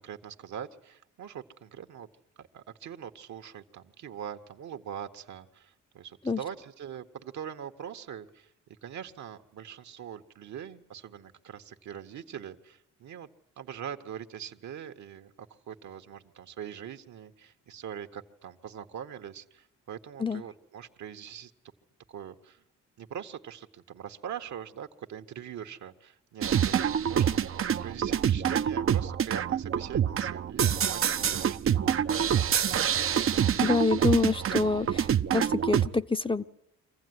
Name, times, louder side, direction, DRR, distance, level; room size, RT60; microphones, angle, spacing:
voice 1, 0.0-2.1 2.4-13.3 13.6-21.5 22.1-22.6 23.0-27.4 27.8-32.6, right 9 dB, 65° right, 7 dB, 1.7 m, -42 dB
sound 1, 26.4-35.9, right 8 dB, 45° right, 0.8 m, -26 dB
voice 2, 33.6-35.1 35.3-36.4, left 4 dB, 15° left, 8 dB, 0.8 m, -26 dB
25.0 x 15.5 x 9.7 m, 0.83 s
cardioid pair, 90°, 30 cm